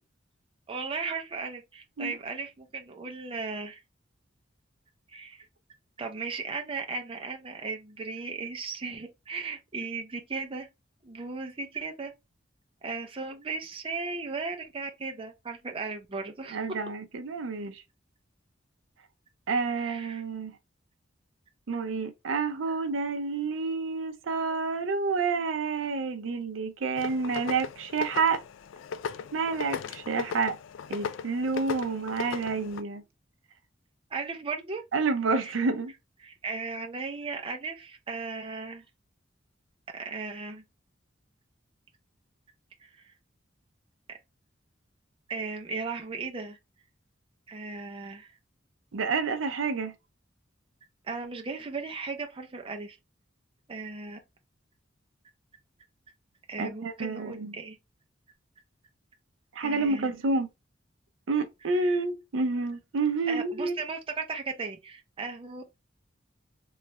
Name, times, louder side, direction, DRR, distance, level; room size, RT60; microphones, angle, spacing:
voice 1, 0.7-3.8 5.1-5.4 6.0-10.7 11.0-12.1 12.8-16.6 19.7-20.2 34.1-34.8 35.3-35.6 36.2-38.8 39.9-40.6 42.8-42.9 44.1-44.2 45.3-46.6 47.5-48.3 51.1-53.0 53.7-54.2 56.5-57.8 59.6-60.1 61.7-61.9 63.3-65.8, right 4 dB, 30° right, 0.5 m, -36 dB
voice 2, 16.5-17.8 19.5-20.5 21.7-28.4 29.3-30.6 30.9-33.0 34.9-35.9 48.9-49.9 56.6-57.6 59.6-60.5 61.3-63.8, right 4 dB, 85° right, 0.5 m, -29 dB
sound 1, 27.0-32.8, left 6 dB, 80° left, 0.3 m, -37 dB
3.1 x 2.4 x 2.8 m
head